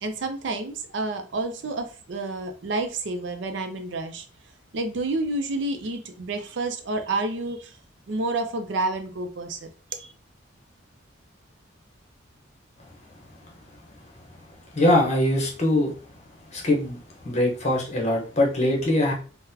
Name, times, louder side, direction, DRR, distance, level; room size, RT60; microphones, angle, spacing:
voice 1, 0.0-4.2 4.7-7.8 8.1-9.7 10.0-10.1, right 2 dB, 60° right, 6 dB, 0.5 m, -29 dB
voice 2, 14.7-15.9 16.5-17.0 17.2-19.1, left 1 dB, 35° left, -1 dB, 0.9 m, -22 dB
3.8 x 2.1 x 2.7 m, 0.37 s
head